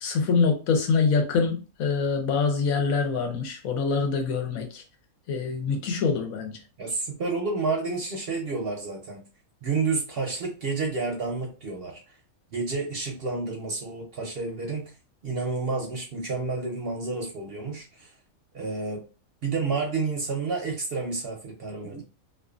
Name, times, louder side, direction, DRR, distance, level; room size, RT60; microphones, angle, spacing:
voice 1, 0.0-4.8 5.3-6.6, left 5 dB, 85° left, 1.1 m, -25 dB
voice 2, 6.8-9.2 9.6-12.0 12.5-14.9 15.2-18.1 18.5-19.0 19.4-22.0, right 4 dB, 60° right, 0.7 m, -30 dB
2.5 x 2.4 x 2.4 m
omnidirectional pair, 1.4 m